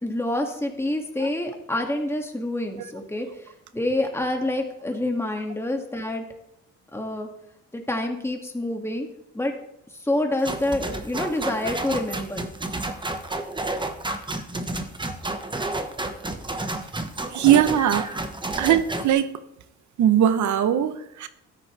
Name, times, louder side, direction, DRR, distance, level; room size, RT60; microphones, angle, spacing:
voice 1, 0.0-3.3 3.7-6.2 6.9-7.3 7.7-9.1 9.3-9.5 10.0-12.4, left 1 dB, 10° left, 2.1 m, -27 dB
sound 1, 10.4-19.1, right 2 dB, 15° right, 1.2 m, -30 dB
voice 2, 17.3-18.1 18.6-19.3 20.0-21.3, right 10 dB, 70° right, 0.9 m, -20 dB
13.5 x 9.7 x 3.3 m
cardioid pair, 90°, 30 cm